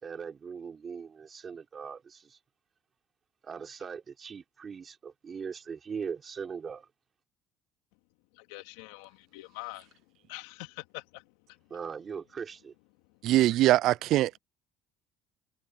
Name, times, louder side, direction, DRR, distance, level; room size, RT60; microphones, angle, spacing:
voice 1, 0.0-2.4 3.4-6.9 11.7-12.7, right 6 dB, 35° right, 4.3 m, -40 dB
voice 2, 8.3-9.9 10.3-11.6, left 21 dB, 90° left, 2.8 m, -44 dB
voice 3, 13.2-14.4, right 15 dB, 70° right, 0.4 m, -22 dB
supercardioid pair, 90°, 0 cm